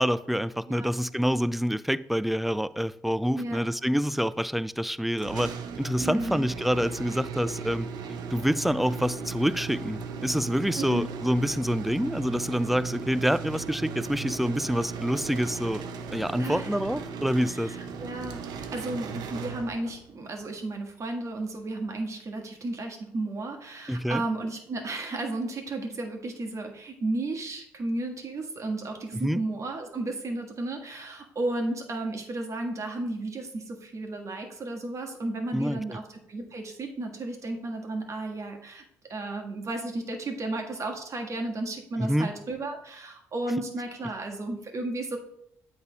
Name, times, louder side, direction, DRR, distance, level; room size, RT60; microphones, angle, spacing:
voice 1, 0.0-5.5 5.8-7.9 8.3-15.8 16.1-17.7 23.9-24.2 29.2-29.4 35.5-36.0 42.0-42.3, equal, ahead, 0.3 m, -27 dB
sound 1, 5.2-20.1, right 5 dB, 70° right, 0.7 m, -37 dB
voice 2, 6.0-6.4 10.8-11.1 16.4-16.8 17.5-38.8 39.1-45.2, right 2 dB, 45° right, 1.6 m, -33 dB
8.0 x 3.4 x 5.1 m
supercardioid pair, 60°, 7 cm